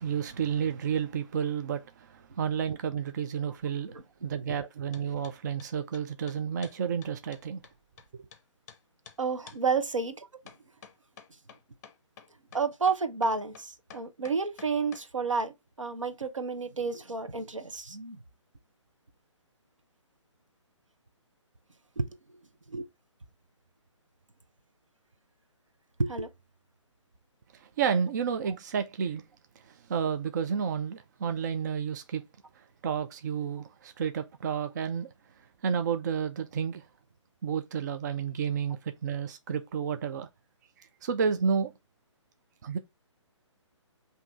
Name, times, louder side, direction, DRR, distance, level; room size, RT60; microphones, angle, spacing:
voice 1, 0.0-3.9 4.2-7.6 8.1-8.2 27.6-29.2 29.9-32.2 32.8-35.1 35.6-36.9 37.4-40.3 41.0-41.7 42.6-42.8, right 7 dB, 35° right, 0.4 m, -31 dB
sound 1, 4.9-5.3 5.6-8.4 8.7-8.8 9.0-9.2 9.5-9.6 10.5-15.1, left 7 dB, 35° left, 0.7 m, -50 dB
voice 2, 9.2-10.3 12.5-18.2 22.0-22.1 22.7-22.9 26.0-26.3, right 4 dB, 80° right, 0.9 m, -30 dB
5.8 x 2.8 x 3.3 m
figure-of-eight pair, 135°, 16 cm